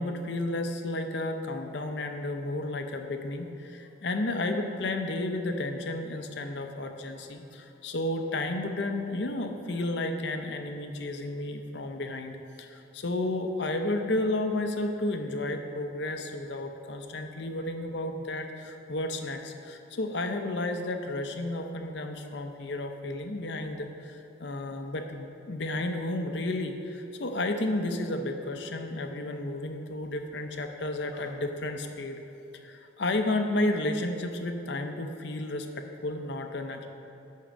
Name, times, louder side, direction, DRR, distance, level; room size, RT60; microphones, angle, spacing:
voice 1, 0.0-32.2 32.5-36.9, left 2 dB, 65° left, 5 dB, 0.7 m, -32 dB
11.0 x 3.8 x 6.2 m, 2.9 s
head